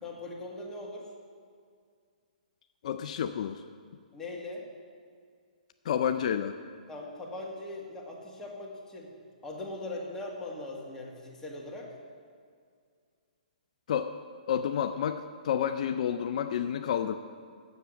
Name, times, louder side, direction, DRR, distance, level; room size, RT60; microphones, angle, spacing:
voice 1, 0.0-1.1 4.1-4.7 6.9-9.1 9.4-11.9, left 2 dB, 10° left, -4 dB, 1.9 m, -40 dB
voice 2, 2.8-3.6 5.9-6.6 13.9-14.1 14.5-17.2, left 9 dB, 55° left, 9 dB, 0.4 m, -30 dB
7.3 x 7.1 x 7.8 m, 2.1 s
hypercardioid pair, 135°, 5 cm